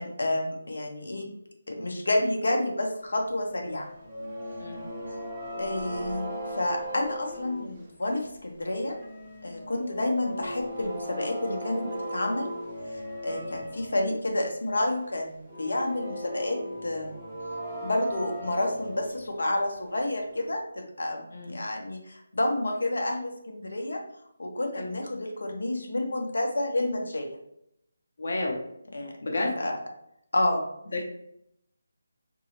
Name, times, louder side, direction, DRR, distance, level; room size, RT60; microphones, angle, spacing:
voice 1, 0.0-1.3 1.7-3.9 5.6-9.0 9.4-12.5 12.9-17.1 17.8-24.0 24.4-27.4 28.9-29.1 29.6-29.8 30.3-30.6, left 1 dB, 85° left, 2 dB, 0.7 m, -29 dB
sound 1, 3.6-8.2 8.6-14.1 14.4-14.5 15.4-19.4 20.5-20.6, equal, 15° right, 0.5 m, -38 dB
voice 2, 28.2-28.6 29.2-29.5 30.9-31.0, left 2 dB, 55° left, 0 dB, 0.7 m, -30 dB
4.0 x 2.7 x 2.9 m, 0.77 s
figure-of-eight pair, 175°, 0 cm